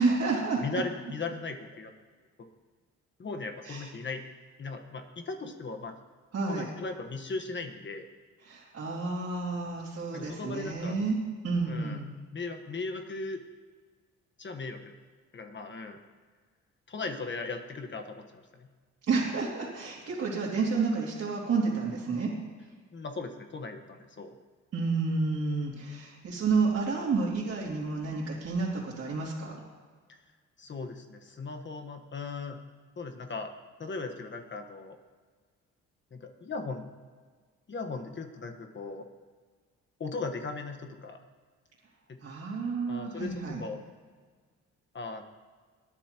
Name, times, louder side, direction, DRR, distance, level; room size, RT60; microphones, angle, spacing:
voice 1, 0.0-0.6 3.6-3.9 6.3-6.7 8.4-11.2 11.4-12.1 19.1-22.3 24.7-29.6 42.2-43.6, right 4 dB, 55° right, -7 dB, 2.8 m, -30 dB
voice 2, 0.6-1.9 3.2-4.2 4.6-5.9 6.5-8.0 10.1-11.0 11.7-12.0 12.3-13.4 14.4-14.8 15.3-16.0 16.9-18.7 22.9-24.3 30.1-30.2 30.6-32.6 33.0-33.5 33.8-34.9 36.1-36.9 37.7-39.1 40.0-41.2 42.1-42.2 42.9-43.8 44.9-45.2, left 3 dB, 40° left, 5 dB, 1.4 m, -38 dB
20.5 x 10.5 x 3.0 m, 1.5 s
cardioid pair, 90°, 30 cm